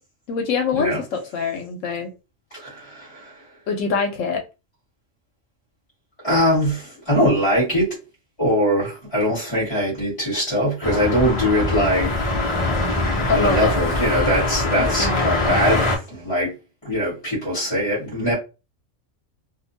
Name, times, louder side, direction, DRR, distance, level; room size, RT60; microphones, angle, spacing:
voice 1, 0.3-2.1 3.7-4.4 13.3-13.7 14.7-15.6, left 5 dB, 75° left, 0.9 m, -24 dB
voice 2, 2.6-3.4 6.2-8.0 8.4-12.1 13.3-16.5 16.8-18.3, equal, 20° left, 1.1 m, -22 dB
sound 1, 10.8-16.0, left 2 dB, 40° left, 0.4 m, -23 dB
2.5 x 2.1 x 2.6 m
omnidirectional pair, 1.4 m